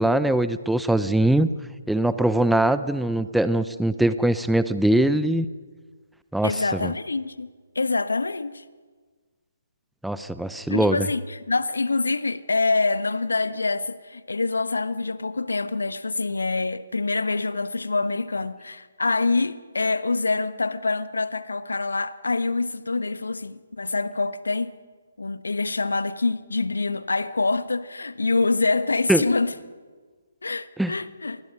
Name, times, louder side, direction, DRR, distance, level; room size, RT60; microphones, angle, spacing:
voice 1, 0.0-1.5 1.9-5.5 6.3-6.9 10.0-11.1 29.1-29.2 30.8-30.9, right 1 dB, ahead, 0.7 m, -22 dB
voice 2, 6.4-7.5 7.7-8.6 10.7-24.7 25.2-29.5 30.4-31.4, left 3 dB, 75° left, 1.2 m, -25 dB
29.0 x 22.5 x 5.3 m
figure-of-eight pair, 140°, 0 cm